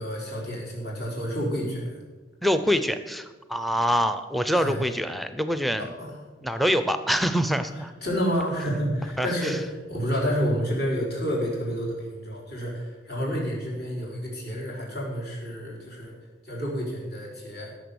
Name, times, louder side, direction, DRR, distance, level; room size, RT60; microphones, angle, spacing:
voice 1, 0.0-1.9 4.5-4.8 5.8-6.2 8.0-16.1 16.4-17.7, equal, 55° left, -3 dB, 4.2 m, -29 dB
voice 2, 2.4-5.9 6.4-7.9 9.2-9.6, equal, ahead, 10 dB, 0.6 m, -25 dB
16.5 x 6.8 x 7.0 m, 1.2 s
head